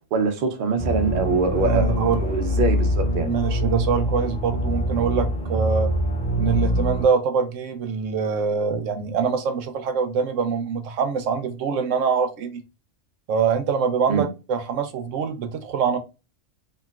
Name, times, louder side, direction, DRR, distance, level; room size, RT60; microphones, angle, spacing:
voice 1, 0.1-3.3 14.1-14.2, right 4 dB, 55° right, 0.7 m, -24 dB
sound 1, 0.8-7.1, equal, 5° left, 0.8 m, -24 dB
voice 2, 1.6-2.3 3.2-5.9 6.4-12.6 13.3-16.0, right 6 dB, 85° right, 1.0 m, -24 dB
3.0 x 2.5 x 2.3 m
omnidirectional pair, 1.3 m